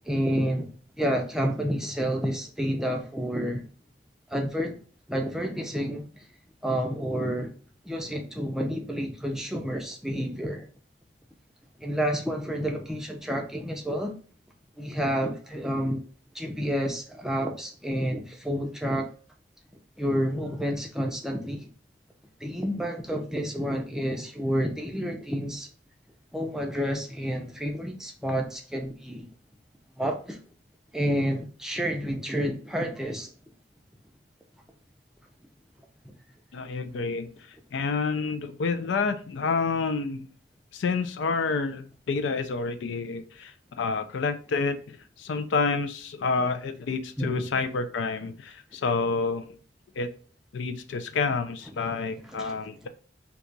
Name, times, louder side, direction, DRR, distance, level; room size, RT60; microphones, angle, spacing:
voice 1, 0.1-0.7 1.0-3.6 4.3-4.8 5.1-6.2 6.6-7.5 7.8-10.7 11.8-14.1 14.8-16.0 16.3-19.1 20.0-21.7 22.4-25.7 26.3-29.3 30.0-30.4 30.9-33.3 36.0-36.1 47.2-47.4 52.4-52.6, equal, 5° right, 2 dB, 0.4 m, -29 dB
voice 2, 36.5-37.3 37.7-40.3 40.7-49.4 50.0-50.1 50.5-52.9, left 4 dB, 75° left, 9 dB, 0.4 m, -29 dB
2.8 x 2.3 x 3.9 m, 0.40 s
head